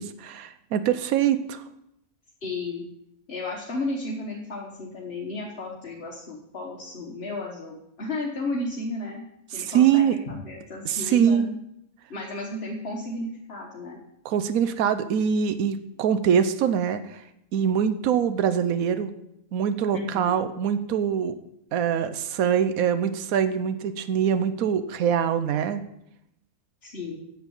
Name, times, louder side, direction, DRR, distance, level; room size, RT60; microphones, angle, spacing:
voice 1, 0.0-1.6 9.5-10.2 10.8-11.6 14.2-17.2 17.5-19.1 19.5-21.3 21.7-25.8, right 8 dB, 90° right, 12 dB, 1.1 m, -24 dB
voice 2, 2.4-2.8 3.3-9.3 9.5-11.5 12.1-14.0 19.9-20.5 26.8-27.2, left 2 dB, 50° left, -2 dB, 1.5 m, -33 dB
9.4 x 7.2 x 7.1 m, 0.80 s
omnidirectional pair, 1.4 m